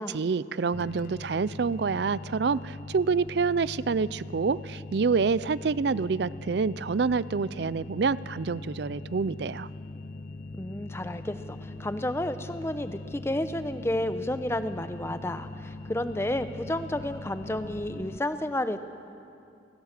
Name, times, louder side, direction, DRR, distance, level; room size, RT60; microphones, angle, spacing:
voice 1, 0.0-9.7, right 5 dB, 60° right, 19 dB, 0.4 m, -27 dB
sound 1, 0.7-18.2, left 2 dB, 50° left, 0.6 m, -41 dB
voice 2, 10.6-18.8, left 1 dB, 15° left, 10 dB, 0.8 m, -31 dB
30.0 x 16.5 x 6.6 m, 2.5 s
head